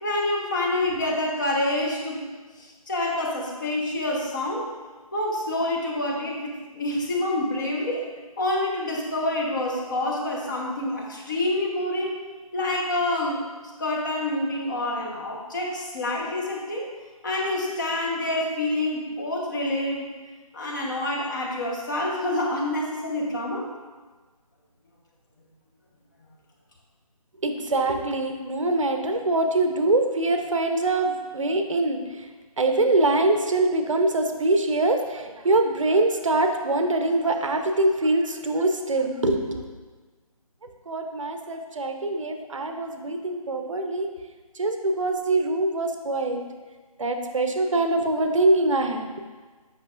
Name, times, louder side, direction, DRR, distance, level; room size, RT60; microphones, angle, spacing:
voice 1, 0.0-2.3 2.6-4.7 5.1-8.0 8.4-12.2 12.5-13.4 13.8-16.9 17.2-20.1 20.5-23.7, left 1 dB, 30° left, -2 dB, 0.9 m, -27 dB
voice 2, 27.4-32.0 32.6-39.6 40.9-44.1 44.6-46.4 47.0-49.1, right 2 dB, 55° right, 5 dB, 0.7 m, -23 dB
8.2 x 5.6 x 2.4 m, 1.4 s
figure-of-eight pair, 165°, 19 cm